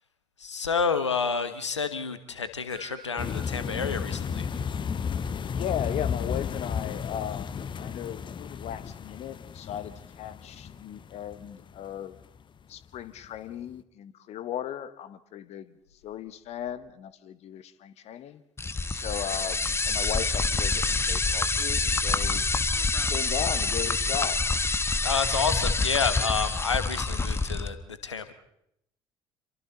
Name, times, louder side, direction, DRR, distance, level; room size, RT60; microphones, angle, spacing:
voice 1, 0.4-4.5 25.0-27.8 28.0-28.3, left 5 dB, 80° left, 11 dB, 1.2 m, -29 dB
sound 1, 2.7-5.3 5.5-5.6 6.1-6.2, right 6 dB, 35° right, 5.5 m, -54 dB
sound 2, 3.2-12.2 12.8-13.0 13.2-13.4, left 6 dB, 35° left, 1.0 m, -33 dB
voice 2, 5.5-12.2 12.7-15.7 16.0-18.4 18.9-22.4 23.0-24.4, left 10 dB, 50° left, 14 dB, 1.3 m, -36 dB
sound 3, 18.6-27.7, left 3 dB, 15° left, 1.2 m, -27 dB
28.0 x 23.5 x 4.0 m, 0.78 s
figure-of-eight pair, 55°, 15 cm